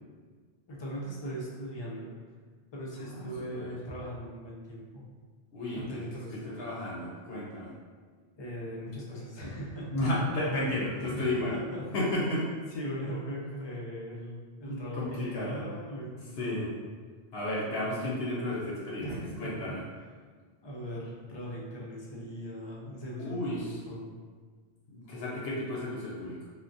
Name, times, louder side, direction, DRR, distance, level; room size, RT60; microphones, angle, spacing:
voice 1, 0.7-2.1 2.7-5.0 5.8-6.6 8.3-9.9 11.0-11.9 12.7-16.7 19.0-19.7 20.6-24.1, equal, 40° left, -4 dB, 0.4 m, -39 dB
voice 2, 3.0-3.7 5.5-6.0 6.3-7.7 9.9-11.6 11.9-12.4 14.6-15.6 16.4-16.7 17.3-19.1 19.4-19.8 23.1-23.8 24.9-26.4, left 1 dB, 70° left, -5 dB, 0.8 m, -33 dB
3.5 x 2.1 x 2.5 m, 1.5 s
omnidirectional pair, 1.1 m